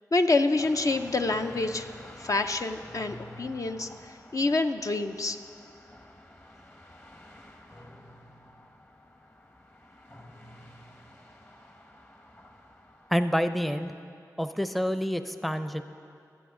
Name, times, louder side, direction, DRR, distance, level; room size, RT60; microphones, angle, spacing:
voice 1, 0.1-1.9 2.2-5.4, left 3 dB, 55° left, 6 dB, 0.5 m, -27 dB
sound 1, 0.6-14.0, left 1 dB, 35° left, 1.2 m, -50 dB
voice 2, 13.1-13.9 14.4-15.8, equal, ahead, 10 dB, 0.5 m, -28 dB
21.5 x 7.8 x 3.8 m, 2.4 s
cardioid pair, 45°, 7 cm